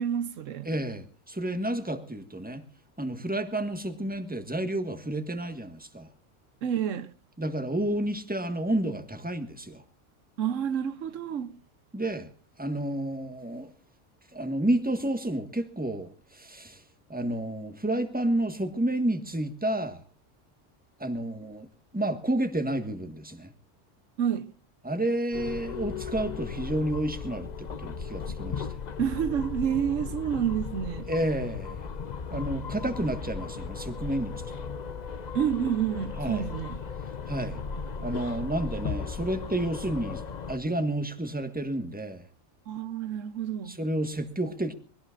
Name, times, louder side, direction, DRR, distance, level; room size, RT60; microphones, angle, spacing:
voice 1, 0.0-0.7 6.6-7.1 10.4-11.6 24.2-24.5 29.0-31.1 35.3-36.8 42.7-43.8, right 9 dB, 85° right, 1.2 m, -29 dB
voice 2, 0.6-2.6 3.0-6.1 7.4-9.8 11.9-12.3 12.6-13.7 14.3-16.8 17.1-20.0 21.0-21.7 21.9-23.5 24.8-28.8 31.1-31.8 32.3-34.7 36.2-36.5 37.2-37.6 38.0-40.2 40.5-42.2 43.7-44.7, right 1 dB, 5° right, 1.6 m, -30 dB
sound 1, 25.3-40.6, left 5 dB, 40° left, 0.8 m, -36 dB
23.0 x 17.5 x 2.5 m
omnidirectional pair, 1.3 m